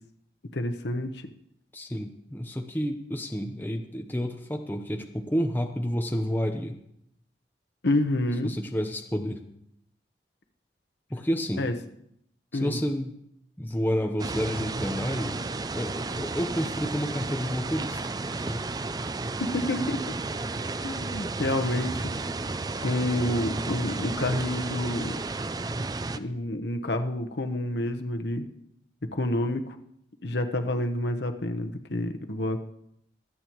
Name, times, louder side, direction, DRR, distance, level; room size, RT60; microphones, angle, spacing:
voice 1, 0.5-1.2 7.8-8.5 11.6-11.7 12.5-12.8 19.5-20.0 20.8-22.3 22.8-25.2 26.2-28.5 29.1-29.8 30.2-32.6, left 1 dB, 80° left, 6 dB, 1.0 m, -28 dB
voice 2, 1.7-6.8 8.4-9.4 11.1-11.7 12.5-13.2 13.6-15.4 15.7-18.0 18.3-18.6, equal, 10° left, 4 dB, 0.8 m, -30 dB
sound 1, 14.2-26.2, right 3 dB, 20° right, 0.4 m, -32 dB
25.0 x 8.7 x 3.1 m, 0.76 s
head